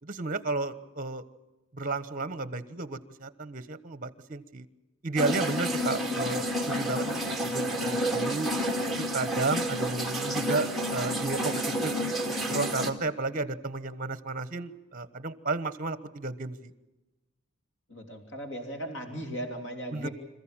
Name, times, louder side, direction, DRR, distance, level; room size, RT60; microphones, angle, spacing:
voice 1, 0.0-1.2 1.7-4.7 5.0-8.5 9.0-11.9 12.5-16.7 19.9-20.1, right 3 dB, 40° right, 14 dB, 1.2 m, -33 dB
sound 1, 5.2-12.9, equal, ahead, 2.2 m, -30 dB
voice 2, 17.9-20.1, equal, 60° left, 4 dB, 3.2 m, -37 dB
27.0 x 15.0 x 8.9 m, 1.1 s
head